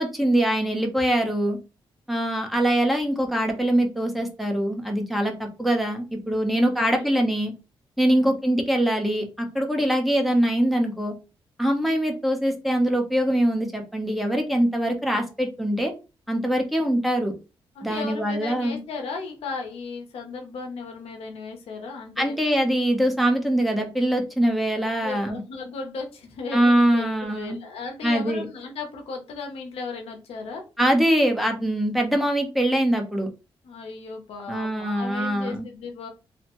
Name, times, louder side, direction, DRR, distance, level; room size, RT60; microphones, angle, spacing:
voice 1, 0.0-1.6 2.1-7.5 8.0-11.1 11.6-15.9 16.3-17.3 17.8-18.8 22.2-25.4 26.5-27.6 28.0-28.4 30.8-33.3 34.5-35.7, right 1 dB, ahead, 2 dB, 0.8 m, -23 dB
voice 2, 6.5-7.1 8.0-8.3 17.7-22.4 25.0-30.6 33.6-36.1, left 4 dB, 90° left, 3 dB, 0.7 m, -36 dB
3.2 x 2.1 x 2.9 m, 0.30 s
cardioid pair, 85°, 10 cm